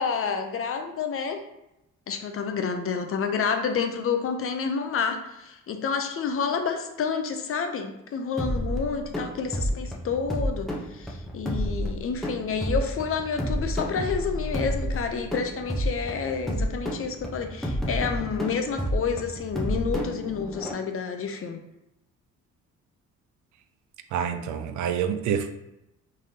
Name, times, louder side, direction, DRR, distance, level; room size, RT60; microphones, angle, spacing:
voice 1, 0.0-1.4 2.1-21.6, left 6 dB, 45° left, 6 dB, 0.6 m, -29 dB
sound 1, 8.4-20.7, equal, ahead, 0.8 m, -30 dB
voice 2, 24.1-25.5, right 8 dB, 75° right, 9 dB, 0.5 m, -27 dB
3.7 x 3.2 x 2.8 m, 0.87 s
cardioid pair, 90°, 30 cm